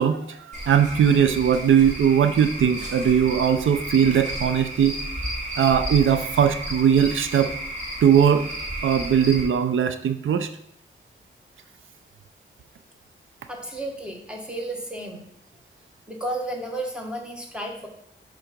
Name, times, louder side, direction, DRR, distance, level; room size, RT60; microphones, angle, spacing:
voice 1, 0.0-5.0 5.6-7.5 8.0-8.5 8.8-10.5, right 8 dB, 80° right, 10 dB, 0.4 m, -20 dB
Cricket / Frog, 0.5-9.4, right 1 dB, 35° right, 1.9 m, -33 dB
voice 2, 13.5-15.2 16.1-17.9, right 1 dB, 5° right, 1 dB, 1.4 m, -32 dB
7.3 x 3.8 x 5.1 m, 0.71 s
wide cardioid pair, 110°, 20 cm